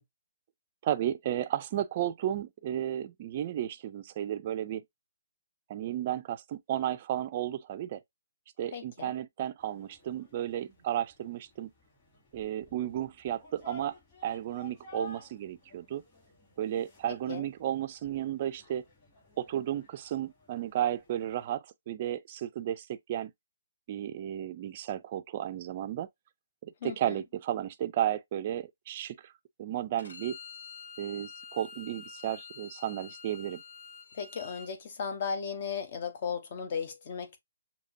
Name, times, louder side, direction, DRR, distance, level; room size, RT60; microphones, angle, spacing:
voice 1, 0.8-4.8 5.7-8.0 8.6-11.7 12.3-13.9 14.2-16.0 16.6-18.8 19.4-23.3 23.9-26.1 26.6-29.3 29.6-30.4 31.0-33.6, right 11 dB, 30° right, 0.4 m, -33 dB
voice 2, 8.7-9.1 17.3-17.5 26.8-27.2 34.1-37.4, left 6 dB, 40° left, 1.1 m, -36 dB
sound 1, 9.6-21.5, left 3 dB, 20° left, 3.0 m, -54 dB
Bowed string instrument, 30.0-34.7, left 6 dB, 75° left, 2.1 m, -47 dB
6.5 x 2.8 x 2.7 m
hypercardioid pair, 165°, 0 cm